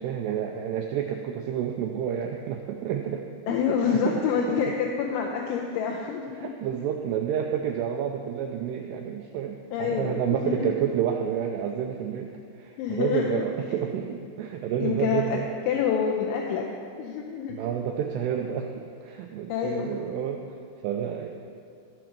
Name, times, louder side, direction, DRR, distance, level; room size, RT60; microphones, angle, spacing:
voice 1, 0.0-4.2 4.5-4.6 6.3-15.5 17.5-20.4 20.8-21.3, right 9 dB, 90° right, 3 dB, 2.4 m, -30 dB
voice 2, 3.5-6.5 6.8-6.9 9.7-10.7 12.8-13.4 14.8-16.7 17.0-17.6 19.5-20.0, left 6 dB, 85° left, 0 dB, 3.0 m, -27 dB
14.0 x 5.0 x 6.0 m, 2.4 s
omnidirectional pair, 5.4 m